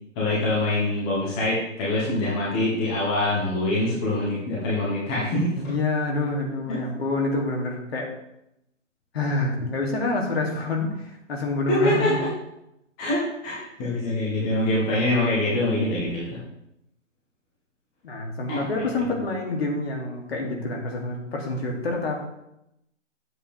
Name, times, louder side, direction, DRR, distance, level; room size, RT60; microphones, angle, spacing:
voice 1, 0.2-5.5 11.7-12.3 13.0-16.4 18.5-18.6, left 1 dB, 5° left, -6 dB, 0.6 m, -24 dB
voice 2, 5.5-8.1 9.1-12.3 18.0-22.2, left 2 dB, 50° left, 0 dB, 2.5 m, -27 dB
10.5 x 7.7 x 3.3 m, 0.85 s
figure-of-eight pair, 145°, 39 cm